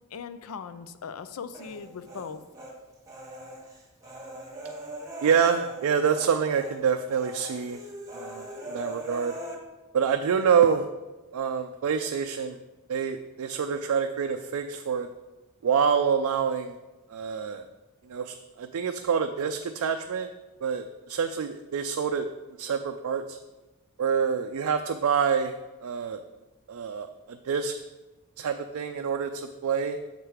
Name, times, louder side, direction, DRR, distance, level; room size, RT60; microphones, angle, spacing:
voice 1, 0.1-2.4, left 6 dB, 85° left, 12 dB, 0.4 m, -39 dB
Human voice, 1.5-2.7 3.1-6.3 6.6-6.8 7.1-9.6, right 1 dB, 15° right, 1.1 m, -41 dB
voice 2, 5.2-7.8 8.1-9.4 9.9-10.9 11.3-12.6 12.9-15.1 15.6-16.8 17.1-17.7 18.1-20.3 20.6-22.3 22.6-23.4 24.0-26.2 26.7-27.7 28.4-30.0, right 6 dB, 80° right, 6 dB, 0.4 m, -27 dB
6.6 x 4.7 x 4.9 m, 1.1 s
head